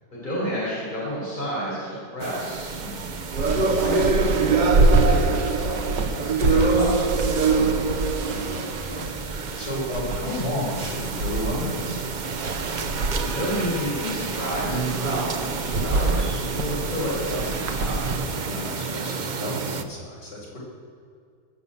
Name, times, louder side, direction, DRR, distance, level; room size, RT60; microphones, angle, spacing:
voice 1, 0.2-2.7 3.3-7.1 13.2-18.2, equal, 25° left, -9 dB, 5.5 m, -31 dB
sound 1, 2.2-19.8, right 4 dB, 55° right, 0.5 m, -27 dB
sound 2, 2.6-18.2, right 2 dB, 80° right, 1.9 m, -27 dB
voice 2, 2.8-3.2 7.3-7.9 8.2-12.0 18.5-20.6, left 1 dB, 75° left, -5 dB, 5.4 m, -33 dB
20.5 x 7.2 x 8.3 m, 2.3 s
omnidirectional pair, 1.9 m